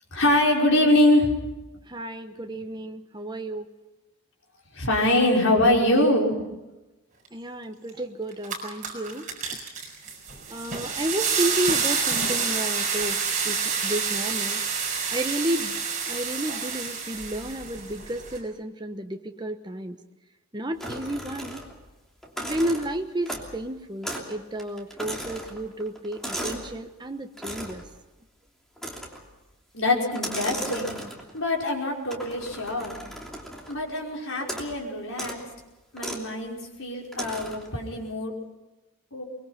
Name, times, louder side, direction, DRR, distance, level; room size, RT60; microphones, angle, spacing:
voice 1, 0.1-1.4 4.7-6.3 29.7-30.9 31.3-32.9 33.7-35.4 35.9-38.3 39.1-39.2, left 1 dB, 70° left, -1 dB, 5.5 m, -23 dB
voice 2, 1.9-3.7 7.3-9.6 10.5-14.6 15.1-15.8 16.1-20.0 20.5-21.6 22.4-27.8, right 1 dB, 20° right, 6 dB, 1.1 m, -32 dB
sound 1, 7.9-8.0 8.3-18.4, right 5 dB, 40° right, 5.6 m, -28 dB
sound 2, 20.8-21.9 22.2-23.6 24.0-24.3 24.6-26.7 27.4-27.9 28.8-29.3 30.1-31.4 32.1-33.8 34.4-34.8 35.1-35.4 36.0-36.3 37.1-37.7, equal, ahead, 3.0 m, -36 dB
23.5 x 22.0 x 5.8 m, 1.0 s
head